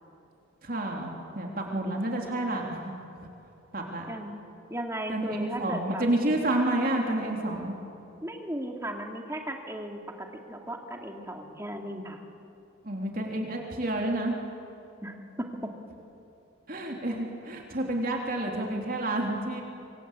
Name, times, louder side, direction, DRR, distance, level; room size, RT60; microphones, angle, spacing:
voice 1, 0.6-2.9 3.7-4.1 5.1-7.7 12.8-14.3 16.7-19.6, right 1 dB, 45° right, 0 dB, 3.5 m, -29 dB
voice 2, 4.1-4.4 4.7-6.0 8.2-12.2 15.0-15.7, right 1 dB, 15° right, 2 dB, 2.5 m, -36 dB
26.5 x 25.5 x 8.4 m, 2.8 s
head